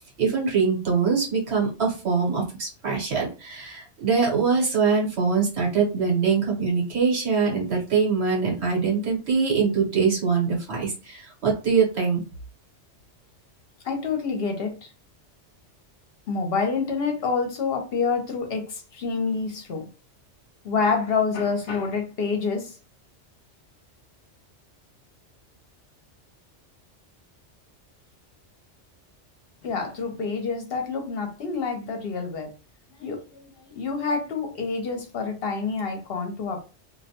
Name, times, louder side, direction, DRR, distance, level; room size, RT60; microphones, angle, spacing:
voice 1, 0.2-12.2, right 5 dB, 65° right, -2 dB, 1.3 m, -23 dB
voice 2, 13.8-14.9 16.3-19.9 20.6-22.8 29.6-32.5 33.0-36.6, left 4 dB, 60° left, 3 dB, 0.8 m, -27 dB
2.5 x 2.1 x 2.7 m, 0.32 s
omnidirectional pair, 1.2 m